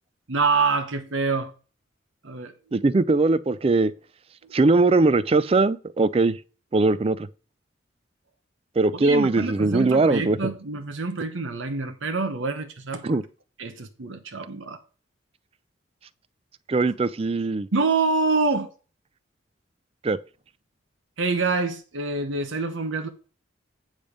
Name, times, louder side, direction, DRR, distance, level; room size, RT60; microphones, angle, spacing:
voice 1, 0.3-1.5 2.2-2.5 9.0-13.2 13.6-14.8 17.7-18.7 21.2-23.1, right 3 dB, 85° right, 1.0 m, -26 dB
voice 2, 2.7-3.9 4.5-6.4 6.7-7.3 8.8-10.5 13.0-13.2 16.7-17.7 20.0-20.2, right 3 dB, 30° right, 0.4 m, -20 dB
8.9 x 5.1 x 5.1 m
head